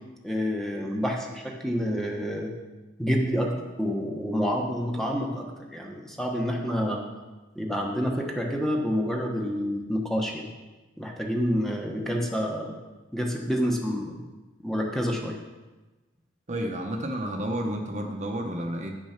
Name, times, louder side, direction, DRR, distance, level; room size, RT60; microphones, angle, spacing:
voice 1, 0.2-2.5 3.0-7.0 7.5-10.5 11.0-12.7 13.1-14.2 14.6-15.4, equal, ahead, 0 dB, 1.2 m, -28 dB
voice 2, 16.5-19.0, right 1 dB, 40° right, 3 dB, 1.0 m, -31 dB
9.5 x 6.4 x 5.8 m, 1.2 s
head